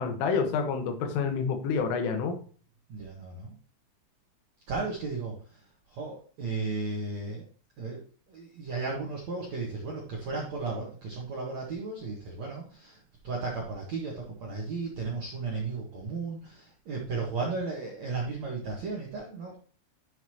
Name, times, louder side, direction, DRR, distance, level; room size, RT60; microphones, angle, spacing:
voice 1, 0.0-2.4, left 5 dB, 80° left, 6 dB, 3.8 m, -28 dB
voice 2, 2.9-3.5 4.7-7.5 7.8-19.6, right 4 dB, 70° right, -2 dB, 1.7 m, -35 dB
11.5 x 6.4 x 2.9 m, 0.41 s
omnidirectional pair, 5.6 m